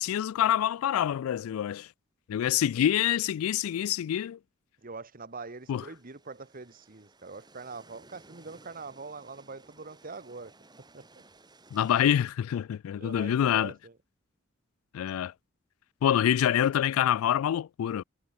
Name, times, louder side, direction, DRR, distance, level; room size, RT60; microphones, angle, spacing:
voice 1, 0.0-1.9 2.3-4.4 5.7-5.8 11.7-13.7 14.9-15.3 16.0-18.0, left 10 dB, 85° left, 0.3 m, -26 dB
voice 2, 4.8-10.5 10.9-11.2 13.0-14.0, right 4 dB, 45° right, 1.5 m, -43 dB
sound 1, 5.3-12.2, right 2 dB, 20° right, 3.1 m, -58 dB
head